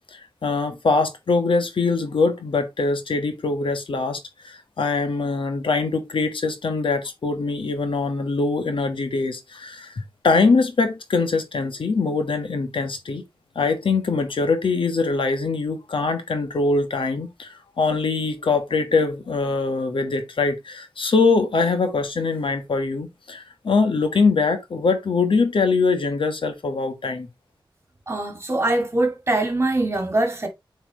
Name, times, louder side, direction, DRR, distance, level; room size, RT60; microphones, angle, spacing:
voice 1, 0.1-13.2 13.5-27.3, left 4 dB, 75° left, 1.3 m, -23 dB
voice 2, 28.1-30.5, right 2 dB, 30° right, 2.2 m, -23 dB
8.1 x 4.4 x 3.0 m
wide cardioid pair, 90°, 9 cm